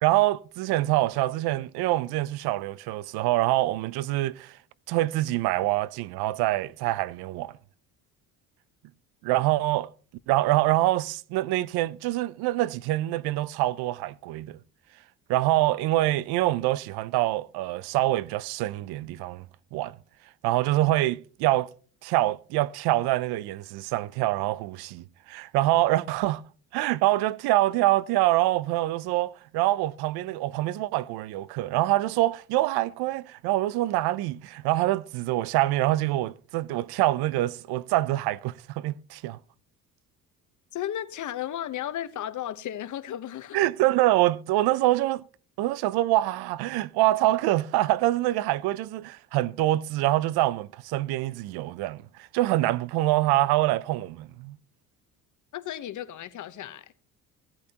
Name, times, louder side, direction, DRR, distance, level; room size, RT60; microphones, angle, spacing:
voice 1, 0.0-4.6 4.9-7.5 9.2-9.9 10.3-14.6 15.3-19.5 19.7-20.0 20.4-21.7 22.0-26.4 26.7-39.4 43.5-45.2 45.6-52.0 52.3-54.6, right 16 dB, 80° right, 0.6 m, -25 dB
voice 2, 40.7-43.6 55.5-56.9, left 11 dB, 50° left, 1.0 m, -34 dB
16.5 x 8.6 x 2.9 m
cardioid pair, 95°, 37 cm